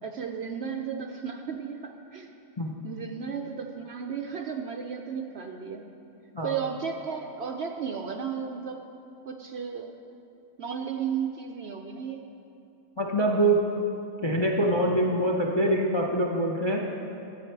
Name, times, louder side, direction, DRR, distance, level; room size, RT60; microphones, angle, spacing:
voice 1, 0.0-2.3 2.8-5.8 6.4-8.8 9.3-9.9 10.6-12.2, right 7 dB, 60° right, 4 dB, 0.7 m, -34 dB
voice 2, 13.0-13.6 14.2-16.8, right 1 dB, 25° left, 0 dB, 0.6 m, -24 dB
13.5 x 7.9 x 4.6 m, 2.8 s
omnidirectional pair, 1.5 m